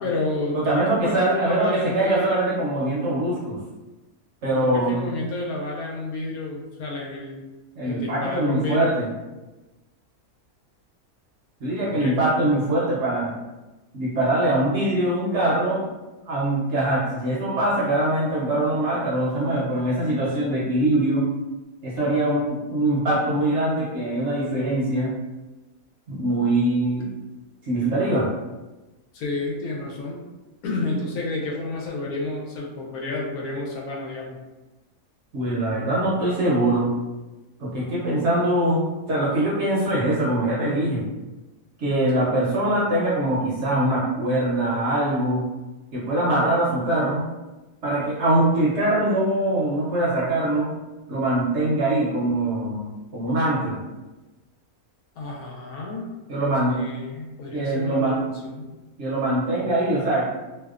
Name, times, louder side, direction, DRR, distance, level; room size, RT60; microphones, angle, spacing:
voice 1, 0.0-2.5 4.5-7.4 7.8-8.9 11.8-12.2 29.1-30.2 30.6-34.4 55.2-56.1 56.6-58.7, left 2 dB, 80° left, -2 dB, 1.0 m, -30 dB
voice 2, 0.5-3.6 4.4-5.0 7.8-9.1 11.6-13.3 13.9-15.8 16.3-21.3 21.8-25.1 26.1-27.1 27.6-28.3 35.3-36.9 37.6-41.0 41.8-45.4 45.9-47.2 47.8-50.7 51.1-53.8 56.3-56.8 57.5-58.3 59.0-60.3, right 1 dB, 60° right, -6 dB, 0.8 m, -23 dB
2.7 x 2.1 x 2.4 m, 1.1 s
omnidirectional pair, 1.6 m